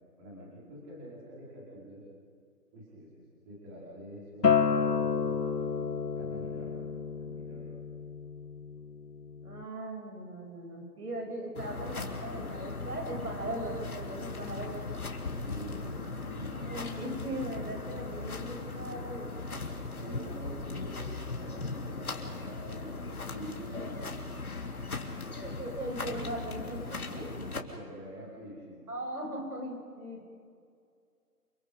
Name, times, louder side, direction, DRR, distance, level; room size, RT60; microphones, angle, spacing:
voice 1, 0.2-2.0 2.7-6.9 7.2-7.8 15.4-17.1 18.8-18.9 20.0-24.1 27.3-28.9, equal, 15° right, -7 dB, 4.9 m, -46 dB
Acoustic guitar, 4.4-9.6, left 6 dB, 85° left, 1.6 m, -30 dB
voice 2, 9.4-15.0 16.6-19.6 25.3-27.3 28.9-30.3, right 1 dB, 70° right, 2 dB, 7.9 m, -39 dB
sound 1, 11.6-27.6, left 3 dB, 60° left, 3.2 m, -38 dB
29.0 x 28.5 x 5.3 m, 2.2 s
figure-of-eight pair, 165°, 48 cm